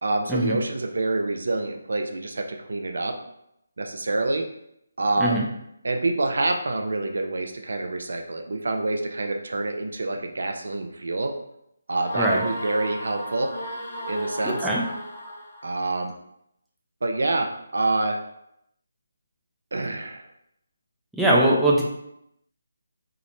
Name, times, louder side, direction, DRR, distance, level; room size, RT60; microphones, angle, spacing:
voice 1, 0.0-3.2 3.8-4.5 5.0-5.4 5.8-11.3 11.9-13.5 14.1-14.7 15.6-16.1 17.0-18.2 19.7-20.3, right 2 dB, 70° right, 4 dB, 0.3 m, -27 dB
sound 1, 12.0-15.8, right 1 dB, 45° left, 0.7 m, -34 dB
voice 2, 14.4-14.8 21.1-21.8, right 1 dB, ahead, -6 dB, 0.4 m, -21 dB
2.8 x 2.0 x 2.6 m, 0.77 s
figure-of-eight pair, 155°, 0 cm